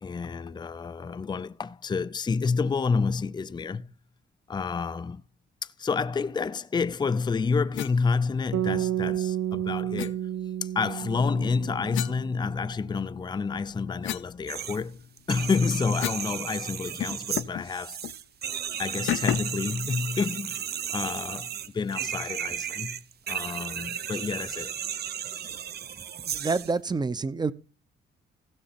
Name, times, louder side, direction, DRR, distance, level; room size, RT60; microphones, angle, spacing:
voice 1, 0.0-3.9 4.5-5.2 5.6-10.3 10.6-15.0 15.3-18.0 18.8-20.6 20.9-23.0 23.3-24.7, left 5 dB, 20° left, 0.5 m, -29 dB
sound 1, 7.7-8.0 10.0-10.1 11.9-13.0 13.4-16.3 16.6-16.7 17.0-17.7 18.0-18.2 19.1-19.6, left 13 dB, 75° left, 0.6 m, -34 dB
sound 2, 8.5-12.8, right 11 dB, 85° right, 0.8 m, -31 dB
sound 3, 14.5-14.8 15.2-26.7, right 9 dB, 55° right, 0.8 m, -34 dB
voice 2, 26.3-27.5, right 4 dB, 20° right, 0.8 m, -27 dB
16.0 x 6.6 x 4.2 m
cardioid pair, 90°, 20 cm